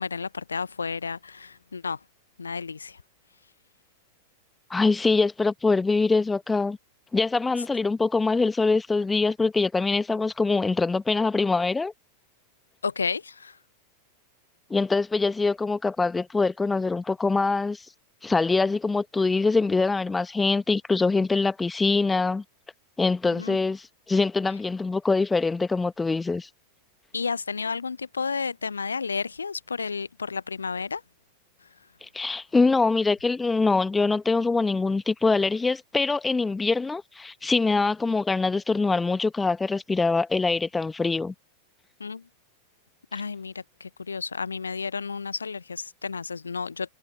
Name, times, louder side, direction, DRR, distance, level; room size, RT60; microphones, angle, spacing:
voice 1, 0.0-2.0 2.4-3.0 12.8-13.6 23.4-23.6 27.1-31.0 42.0-42.2 43.1-46.9, left 5 dB, 75° left, 0.9 m, -32 dB
voice 2, 4.7-6.8 7.1-11.9 14.7-17.8 18.2-22.4 23.0-26.5 32.0-41.3, left 3 dB, 10° left, 1.6 m, -24 dB
figure-of-eight pair, 90°, 0 cm